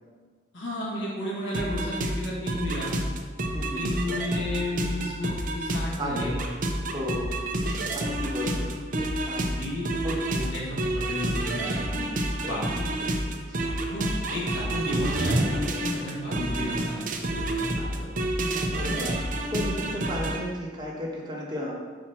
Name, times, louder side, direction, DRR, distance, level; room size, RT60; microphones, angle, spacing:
voice 1, 0.5-3.0 3.7-6.4 9.3-9.9 10.3-12.0 12.4-13.1 13.6-18.1, left 1 dB, 75° left, -7 dB, 1.8 m, -33 dB
sound 1, 1.5-20.4, right 1 dB, 45° right, 0.7 m, -29 dB
voice 2, 3.5-3.9 6.0-6.4 6.9-7.4 7.9-8.7 9.0-9.4 10.0-10.2 11.6-11.7 12.4-12.5 13.0-13.1 13.5-13.7 18.7-21.7, equal, 25° right, -4 dB, 1.2 m, -34 dB
5.7 x 4.3 x 5.7 m, 1.5 s
head